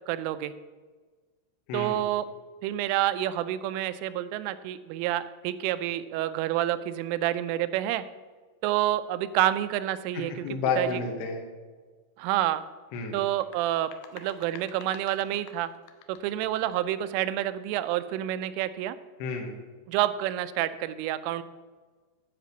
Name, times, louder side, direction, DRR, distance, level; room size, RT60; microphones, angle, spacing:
voice 1, 0.1-0.5 1.7-2.3 2.6-8.0 8.6-10.5 10.8-11.0 12.2-12.6 13.1-15.7 16.1-19.0 19.9-21.4, right 13 dB, 85° right, 13 dB, 3.1 m, -28 dB
voice 2, 10.1-11.4 12.9-13.2 19.2-19.5, left 4 dB, 70° left, 1 dB, 3.0 m, -30 dB
sound 1, 13.3-16.9, left 9 dB, 90° left, 2.4 m, -50 dB
10.0 x 5.1 x 7.9 m, 1.4 s
omnidirectional pair, 5.6 m